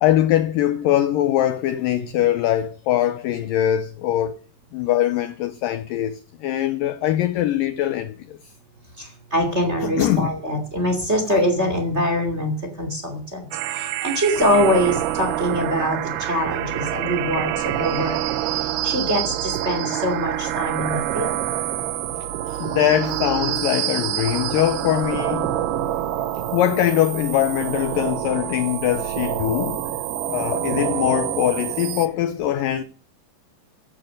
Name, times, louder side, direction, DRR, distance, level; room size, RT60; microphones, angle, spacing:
voice 1, 0.0-4.4 4.7-8.4 9.8-10.3 18.8-18.9 21.7-21.8 22.5-25.6 26.5-29.8 30.3-32.8, left 12 dB, 80° left, 2.0 m, -22 dB
voice 2, 9.0-13.5 13.8-18.2 18.8-21.4, equal, 20° right, 2.4 m, -23 dB
sound 1, 13.5-32.1, right 12 dB, 75° right, 2.9 m, -26 dB
15.5 x 8.5 x 6.5 m
omnidirectional pair, 4.8 m